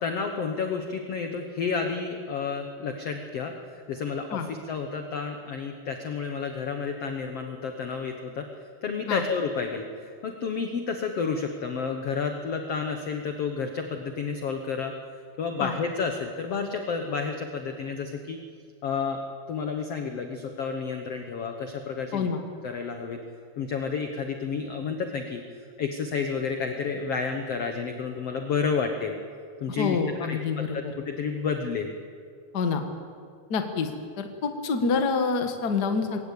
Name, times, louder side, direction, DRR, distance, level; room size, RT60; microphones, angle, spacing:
voice 1, 0.0-3.5 3.9-8.5 8.8-14.9 15.4-18.4 18.8-19.2 19.5-22.3 22.6-23.2 23.6-25.4 25.8-29.2 29.6-31.9, left 5 dB, 65° left, 5 dB, 1.5 m, -30 dB
voice 2, 29.8-30.8 32.5-32.8 33.5-33.9 34.2-36.2, left 5 dB, 50° left, 6 dB, 1.2 m, -27 dB
21.5 x 18.0 x 8.5 m, 2.3 s
omnidirectional pair, 4.4 m